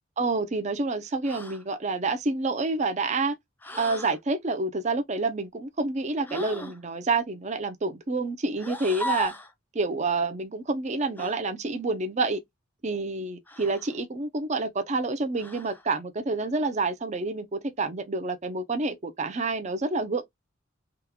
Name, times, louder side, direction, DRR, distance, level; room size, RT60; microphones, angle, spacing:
voice 1, 0.2-3.3 3.7-9.3 9.7-12.4 12.8-20.3, right 3 dB, 35° right, 0.6 m, -28 dB
sound 1, 1.2-1.6 3.6-4.2 6.2-6.8 8.6-9.5 11.2-11.4 13.5-14.0 15.4-15.9, left 1 dB, 10° left, 0.5 m, -36 dB
3.6 x 2.3 x 2.9 m
head